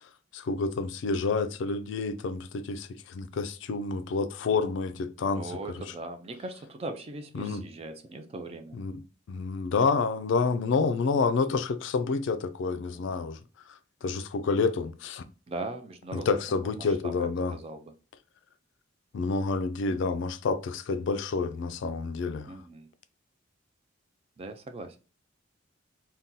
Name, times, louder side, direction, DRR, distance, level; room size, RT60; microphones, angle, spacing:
voice 1, 0.3-5.5 7.4-7.6 8.8-9.0 9.3-13.4 14.0-15.2 16.1-17.5 19.1-22.5, left 4 dB, 60° left, 0.3 m, -28 dB
voice 2, 5.4-8.8 12.9-13.1 15.5-17.9 22.4-22.9 24.4-25.0, right 2 dB, 30° right, 0.4 m, -40 dB
2.7 x 2.2 x 3.6 m
head